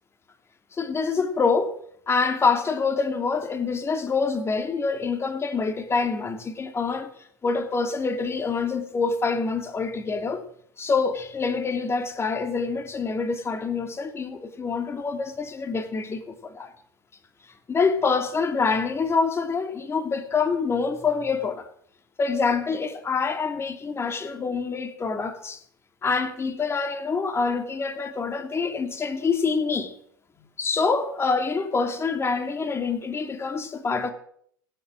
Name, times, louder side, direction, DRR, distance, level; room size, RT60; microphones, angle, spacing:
voice 1, 0.7-1.7 2.1-7.1 7.4-10.4 10.8-16.7 17.7-21.7 22.2-25.6 26.0-29.9 30.6-34.1, left 4 dB, 25° left, 2.5 m, -26 dB
16.5 x 8.0 x 7.5 m
hypercardioid pair, 80°, 10 cm